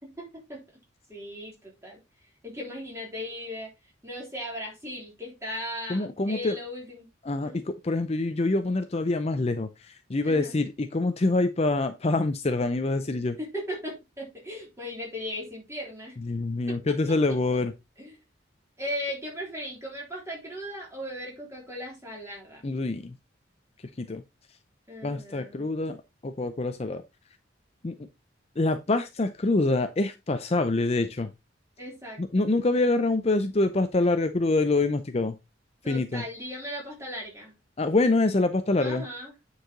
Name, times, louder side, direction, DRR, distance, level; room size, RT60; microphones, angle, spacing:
voice 1, 0.0-0.6 1.1-2.0 2.4-3.7 4.0-7.1 7.4-7.6 10.2-10.5 13.4-16.1 16.7-16.8 17.3-17.4 18.0-18.2 18.8-22.7 24.9-25.7 31.8-32.5 35.8-37.5 38.8-39.3, equal, 15° right, 3.6 m, -37 dB
voice 2, 5.9-6.6 7.2-13.4 16.2-17.7 22.6-23.2 24.0-24.2 25.0-27.0 27.8-27.9 28.6-31.3 32.2-35.4 35.9-36.2 37.8-39.0, left 2 dB, 30° left, 0.5 m, -26 dB
9.1 x 4.8 x 3.8 m
head